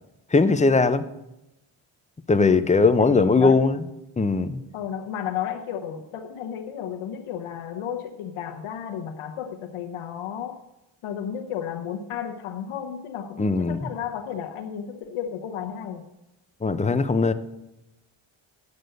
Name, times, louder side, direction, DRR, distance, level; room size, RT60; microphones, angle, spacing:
voice 1, 0.3-1.1 2.3-3.8 4.2-4.6 13.4-13.8 16.6-17.3, left 4 dB, 15° left, 11 dB, 0.6 m, -19 dB
voice 2, 2.4-2.7 3.0-3.5 4.7-10.6 11.0-16.0, left 9 dB, 85° left, 2 dB, 1.0 m, -33 dB
9.6 x 6.7 x 7.9 m, 0.92 s
cardioid pair, 105°, 49 cm